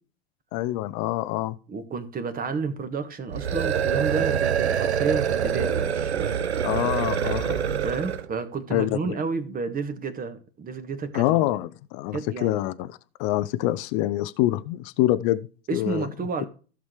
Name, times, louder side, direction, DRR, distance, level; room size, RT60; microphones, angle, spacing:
voice 1, 0.5-1.6 6.6-7.6 8.7-9.1 11.1-16.1 16.4-16.5, left 15 dB, 50° left, 0.6 m, -26 dB
voice 2, 1.7-6.4 7.8-11.4 12.1-12.6 15.7-16.5, right 4 dB, 25° right, 1.5 m, -31 dB
sound 1, 3.3-8.3, right 8 dB, 85° right, 0.7 m, -25 dB
15.0 x 6.2 x 3.2 m
hypercardioid pair, 85°, 32 cm